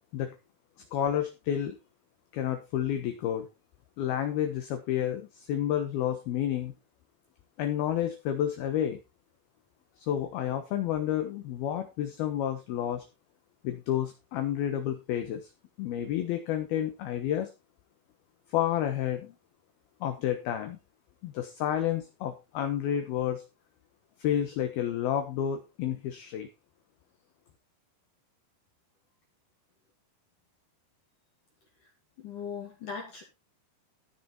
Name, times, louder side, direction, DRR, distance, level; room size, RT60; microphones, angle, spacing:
voice 1, 0.9-1.8 2.3-3.5 4.0-6.7 7.6-9.0 10.0-13.0 13.6-15.5 15.8-17.5 18.5-19.3 20.0-20.8 21.2-23.4 24.2-26.5, left 10 dB, 70° left, 7 dB, 2.5 m, -30 dB
voice 2, 32.2-33.2, left 6 dB, 45° left, 0 dB, 3.5 m, -38 dB
15.0 x 6.9 x 4.3 m, 0.26 s
omnidirectional pair, 5.6 m